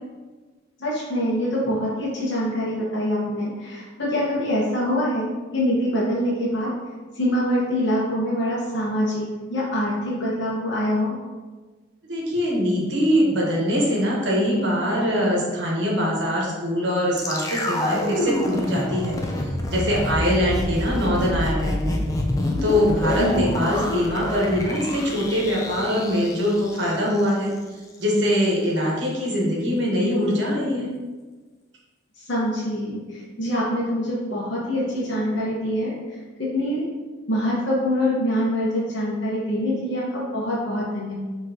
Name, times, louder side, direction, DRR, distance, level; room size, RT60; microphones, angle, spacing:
voice 1, 0.8-6.7 7.1-9.2 9.5-11.1 23.2-23.4 32.3-35.9 36.4-36.9 37.3-41.1, equal, 70° left, -6 dB, 1.0 m, -24 dB
voice 2, 12.0-19.2 19.4-22.0 22.6-27.5 28.0-30.9, equal, 70° right, -4 dB, 1.1 m, -23 dB
sound 1, 17.2-27.3 27.6-27.7, left 1 dB, 20° left, 0.4 m, -27 dB
6.2 x 3.1 x 2.7 m, 1.3 s
head